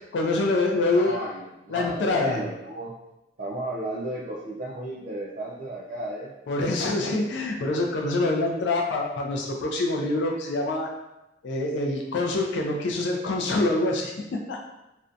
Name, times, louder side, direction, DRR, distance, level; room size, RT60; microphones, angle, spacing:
voice 1, 0.1-1.1 1.7-2.4 6.5-10.9 11.4-14.6, left 2 dB, 70° left, 0 dB, 0.3 m, -25 dB
voice 2, 0.9-2.9 3.4-6.3, right 1 dB, 45° right, -5 dB, 0.4 m, -34 dB
2.5 x 2.1 x 2.4 m, 0.92 s
head